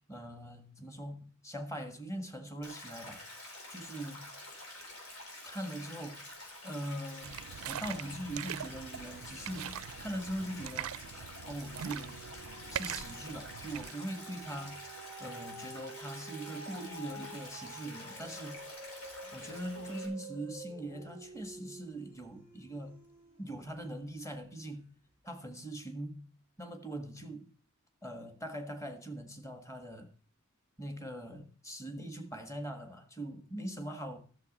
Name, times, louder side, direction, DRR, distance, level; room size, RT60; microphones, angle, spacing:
voice 1, 0.1-3.3 3.7-4.3 5.5-6.2 6.6-7.4 7.7-10.9 11.5-12.2 12.7-14.8 15.2-18.6 19.3-23.0 23.4-24.9 25.2-26.3 26.6-27.5 28.0-30.1 30.8-34.2, right 1 dB, 15° left, 1.6 m, -41 dB
Stream, 2.6-20.1, left 1 dB, 80° left, 4.3 m, -48 dB
sound 1, 7.2-13.9, right 10 dB, 75° right, 0.4 m, -42 dB
sound 2, 10.8-11.0 11.4-23.8 24.4-24.5, right 2 dB, 35° left, 6.1 m, -49 dB
12.0 x 7.3 x 5.3 m
head